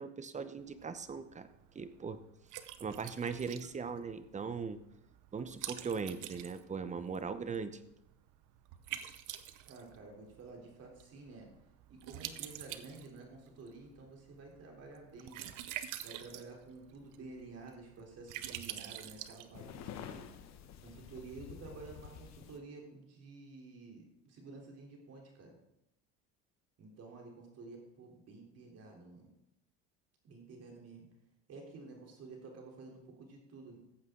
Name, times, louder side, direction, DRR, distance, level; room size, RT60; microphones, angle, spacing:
voice 1, 0.0-1.5 1.7-2.2 2.8-4.8 5.3-7.8, right 5 dB, 20° right, 12 dB, 0.8 m, -39 dB
Liquid, 0.6-20.0, right 12 dB, 60° right, 0.8 m, -48 dB
voice 2, 9.7-11.5 11.9-25.6 26.8-29.3 30.2-31.1 31.5-33.8, right 3 dB, 45° right, 0 dB, 3.7 m, -51 dB
sound 1, 19.5-22.6, left 8 dB, 50° left, 1.1 m, -49 dB
14.5 x 8.1 x 3.8 m, 0.85 s
supercardioid pair, 105°, 35 cm